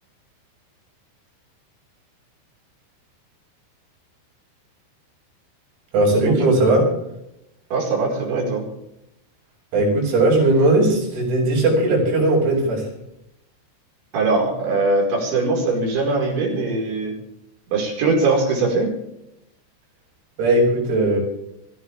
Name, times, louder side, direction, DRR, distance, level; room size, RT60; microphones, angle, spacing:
voice 1, 5.9-6.9 9.7-12.9 20.4-21.2, right 2 dB, 80° right, -2 dB, 9.4 m, -18 dB
voice 2, 7.7-8.7 14.1-17.1 17.7-19.0, right 3 dB, 60° right, -1 dB, 7.1 m, -21 dB
24.0 x 15.5 x 3.6 m, 0.84 s
omnidirectional pair, 6.0 m